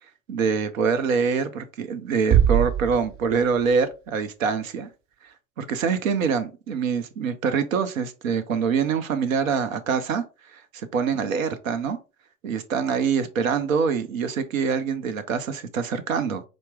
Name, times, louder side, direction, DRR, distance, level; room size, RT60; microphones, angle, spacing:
voice 1, 0.3-4.9 5.2-12.0 12.4-16.4, right 6 dB, 85° right, 0.7 m, -25 dB
sound 1, 2.3-4.2, right 10 dB, 35° right, 0.5 m, -23 dB
4.4 x 2.1 x 3.2 m
hypercardioid pair, 80°, 39 cm